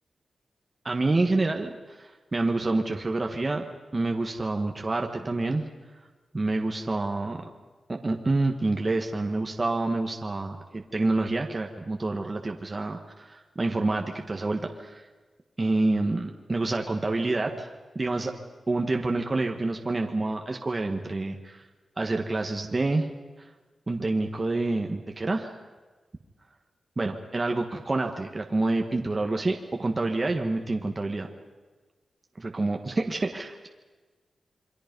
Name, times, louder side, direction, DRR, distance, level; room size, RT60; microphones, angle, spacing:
voice 1, 0.8-3.6 3.9-5.6 6.3-7.4 7.9-15.0 15.6-18.3 18.7-21.6 22.0-23.1 23.4-23.5 23.9-25.6 27.0-31.3 32.4-33.7, right 2 dB, 25° right, 3 dB, 1.5 m, -28 dB
28.0 x 24.0 x 5.4 m, 1.3 s
wide cardioid pair, 130°, 0 cm